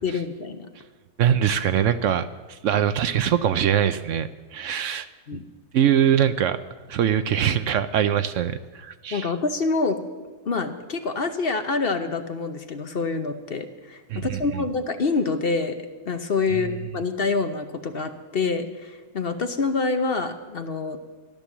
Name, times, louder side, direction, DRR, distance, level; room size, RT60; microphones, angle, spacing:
voice 1, 0.0-0.6 5.3-5.4 9.1-10.0 10.4-15.8 16.1-21.0, left 4 dB, 50° left, 7 dB, 1.0 m, -26 dB
voice 2, 1.2-5.1 5.3-5.4 5.7-6.6 6.9-9.3 14.1-14.6 16.5-16.7, right 9 dB, 70° right, 11 dB, 0.9 m, -23 dB
14.0 x 11.5 x 7.2 m, 1.4 s
omnidirectional pair, 1.5 m